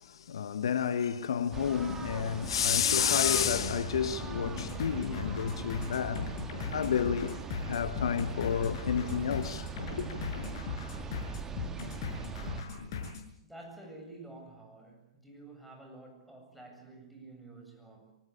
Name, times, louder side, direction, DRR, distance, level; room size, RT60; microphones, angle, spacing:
voice 1, 0.1-6.2 6.7-7.4 7.6-9.7 10.0-10.1, left 7 dB, 70° left, 1.5 m, -30 dB
sound 1, 1.5-12.6, right 5 dB, 15° right, 2.2 m, -41 dB
sound 2, 4.3-13.3, left 5 dB, 55° left, 6.8 m, -39 dB
voice 2, 13.4-18.2, right 2 dB, ahead, 7.9 m, -50 dB
24.5 x 19.5 x 8.7 m
hypercardioid pair, 110°, 3 cm